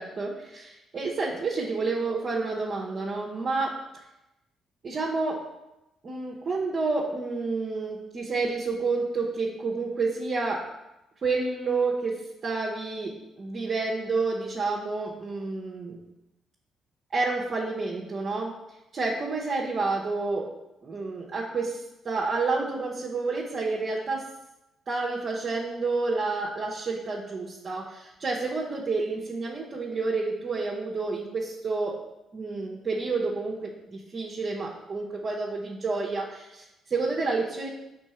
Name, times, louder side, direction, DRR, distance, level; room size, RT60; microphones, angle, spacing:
voice 1, 0.0-3.8 4.8-5.4 6.0-10.7 11.2-16.0 17.1-18.6 18.9-20.5 20.8-24.2 24.9-32.0 32.3-37.7, right 3 dB, 45° right, -4 dB, 0.9 m, -29 dB
4.5 x 3.9 x 5.5 m, 0.94 s
cardioid pair, 90°, 0 cm